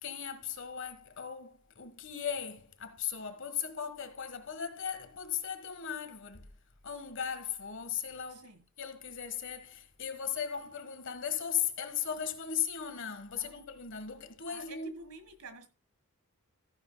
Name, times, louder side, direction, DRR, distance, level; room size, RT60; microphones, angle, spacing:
voice 1, 0.0-6.5 6.8-8.5 8.8-14.9, left 8 dB, 55° left, 1.4 m, -37 dB
voice 2, 8.3-8.6 13.4-13.7 14.5-15.7, right 2 dB, 75° right, 1.8 m, -50 dB
14.0 x 9.6 x 2.2 m
head